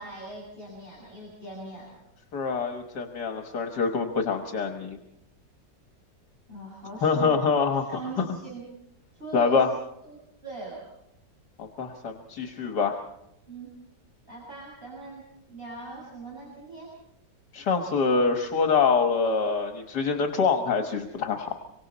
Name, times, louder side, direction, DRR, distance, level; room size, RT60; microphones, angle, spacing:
voice 1, 0.0-2.0 6.5-8.6 9.1-9.6 10.0-10.9 13.5-13.7 14.2-16.9, right 3 dB, 30° right, -5 dB, 6.8 m, -41 dB
voice 2, 2.3-5.0 7.0-7.9 8.2-8.3 9.3-9.7 11.6-13.0 17.5-21.6, left 5 dB, 70° left, 4 dB, 2.0 m, -25 dB
27.0 x 24.5 x 4.2 m, 0.82 s
omnidirectional pair, 1.9 m